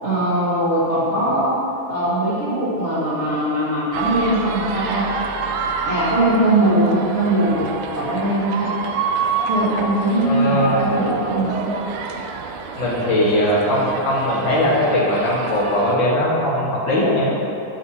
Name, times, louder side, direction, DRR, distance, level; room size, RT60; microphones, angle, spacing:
voice 1, 0.0-1.6 1.9-5.0 5.8-7.7 7.9-8.7 9.5-11.7, right 1 dB, 65° right, -12 dB, 0.6 m, -20 dB
sound 1, 3.9-16.0, right 5 dB, 80° right, 1.8 m, -28 dB
voice 2, 10.2-10.8 12.7-17.3, equal, 45° left, -7 dB, 1.7 m, -19 dB
9.6 x 6.6 x 2.9 m, 2.8 s
omnidirectional pair, 4.0 m